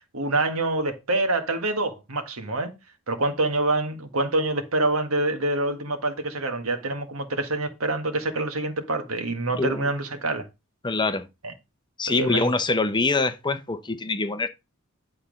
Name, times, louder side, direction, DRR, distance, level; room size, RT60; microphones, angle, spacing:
voice 1, 0.1-2.7 3.1-10.5 12.1-12.5, right 2 dB, 80° right, 1.6 m, -26 dB
voice 2, 9.5-9.9 10.8-11.3 12.0-14.5, left 3 dB, 20° left, 0.7 m, -24 dB
10.5 x 4.3 x 5.2 m
head